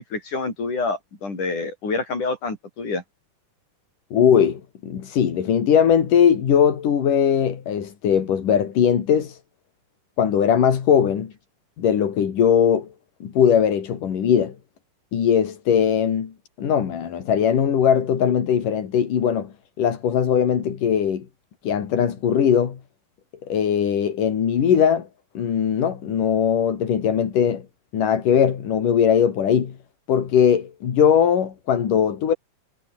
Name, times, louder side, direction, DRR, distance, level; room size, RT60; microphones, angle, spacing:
voice 1, 0.0-3.0, left 3 dB, 75° left, 9.2 m, -27 dB
voice 2, 4.1-9.4 10.2-11.3 11.8-12.9 13.2-14.6 15.1-16.3 16.6-21.3 21.6-22.8 23.5-25.1 25.3-27.6 27.9-29.8 30.1-32.3, left 8 dB, 90° left, 4.2 m, -20 dB
omnidirectional pair, 3.6 m